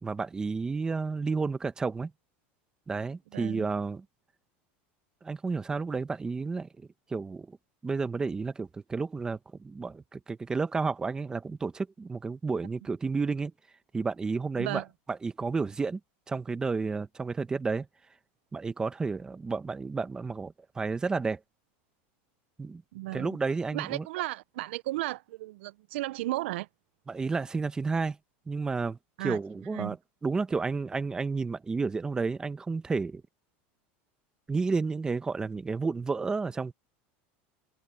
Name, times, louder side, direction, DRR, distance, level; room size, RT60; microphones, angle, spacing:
voice 1, 0.0-2.1 2.9-4.0 5.2-7.6 7.8-13.5 13.9-14.8 15.1-16.0 16.3-17.9 18.5-21.4 22.6-22.8 23.1-24.1 27.1-28.2 28.5-29.0 29.2-30.0 30.2-33.2 34.5-36.7, right 4 dB, 10° right, 1.0 m, -31 dB
voice 2, 3.3-3.7 14.6-14.9 22.9-23.4 23.7-26.7 29.2-29.4 29.7-30.0, right 18 dB, 80° right, 0.4 m, -34 dB
supercardioid pair, 150°, 6 cm